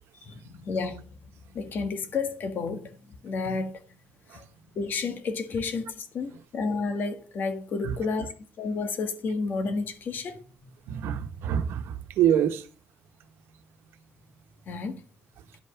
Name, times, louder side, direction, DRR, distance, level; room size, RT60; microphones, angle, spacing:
voice 1, 0.3-1.0 1.5-2.9 3.2-3.8 4.7-8.3 8.6-10.4 14.7-15.0, left 4 dB, 55° left, 1.7 m, -31 dB
voice 2, 10.9-12.7, right 9 dB, 85° right, 1.1 m, -26 dB
11.0 x 5.5 x 5.8 m
cardioid pair, 125°, 4 cm